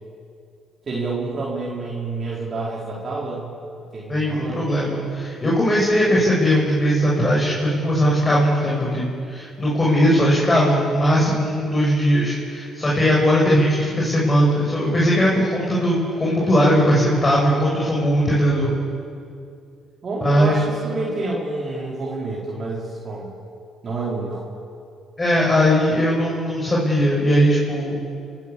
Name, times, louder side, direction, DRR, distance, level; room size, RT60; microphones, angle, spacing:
voice 1, 0.8-3.5 3.9-4.6 20.0-23.3 23.8-24.4, right 3 dB, 45° right, -5 dB, 4.4 m, -28 dB
voice 2, 4.1-18.7 20.2-20.7 25.2-28.0, equal, 25° left, -5 dB, 6.7 m, -19 dB
28.5 x 13.5 x 8.6 m, 2.4 s
hypercardioid pair, 55°, 0 cm